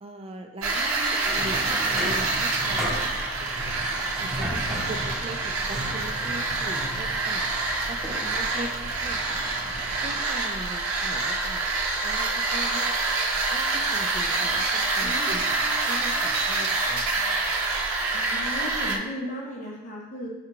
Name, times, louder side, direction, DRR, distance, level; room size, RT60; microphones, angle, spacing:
voice 1, 0.0-3.8 4.2-7.5 7.9-9.5 10.0-11.7 12.0-12.9 13.5-15.6 15.9-17.3 17.6-17.7, right 2 dB, 30° right, 4 dB, 0.3 m, -40 dB
sound 1, 0.6-19.0, right 3 dB, 85° right, 0.5 m, -27 dB
sound 2, 1.4-10.2, equal, ahead, 0.7 m, -36 dB
voice 2, 15.0-15.5 18.1-20.3, equal, 35° left, -2 dB, 0.7 m, -36 dB
5.8 x 2.3 x 2.9 m, 1.1 s
head